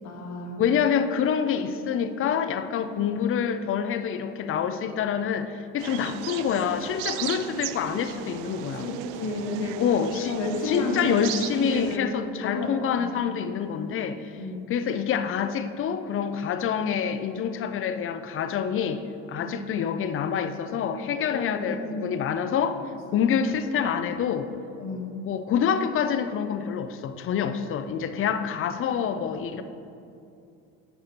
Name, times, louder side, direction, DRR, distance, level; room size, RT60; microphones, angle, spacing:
voice 1, 0.0-0.6 8.8-9.8 10.3-11.2 11.5-12.1 12.4-13.1 14.4-14.7 19.4-19.6 21.3-22.1 24.8-25.1, left 3 dB, 60° left, 1 dB, 1.5 m, -31 dB
voice 2, 0.6-8.9 9.8-10.4 10.6-14.3 14.7-22.8 23.1-24.5 25.2-29.6, left 7 dB, 40° left, 10 dB, 0.6 m, -27 dB
sound 1, 5.8-12.0, right 13 dB, 75° right, 0.5 m, -36 dB
8.8 x 4.8 x 6.0 m, 2.6 s
supercardioid pair, 105°, 32 cm